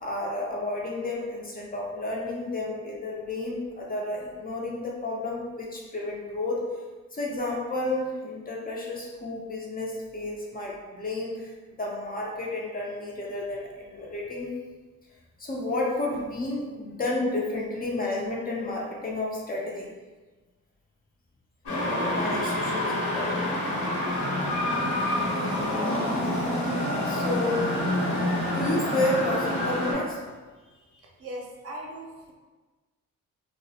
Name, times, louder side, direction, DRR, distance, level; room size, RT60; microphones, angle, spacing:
voice 1, 0.0-6.6 7.1-14.5 15.4-19.9 21.7-23.4 27.0-27.6 28.1-30.2, left 2 dB, 30° left, -3 dB, 0.5 m, -31 dB
sound 1, 21.7-29.9, left 1 dB, 60° left, 0.9 m, -27 dB
voice 2, 31.2-32.3, right 1 dB, 50° right, -1 dB, 0.6 m, -39 dB
2.2 x 2.0 x 2.7 m, 1.3 s
cardioid pair, 90°, 30 cm